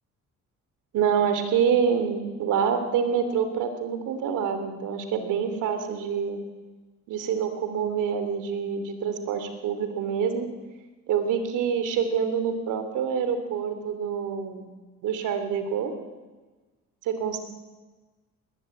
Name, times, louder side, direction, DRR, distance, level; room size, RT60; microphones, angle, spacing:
voice 1, 0.9-6.4 7.1-10.5 11.1-14.7 15.0-15.9 17.0-17.4, right 7 dB, 90° right, 8 dB, 3.1 m, -26 dB
20.5 x 20.0 x 8.7 m, 1.3 s
cardioid pair, 90°, 30 cm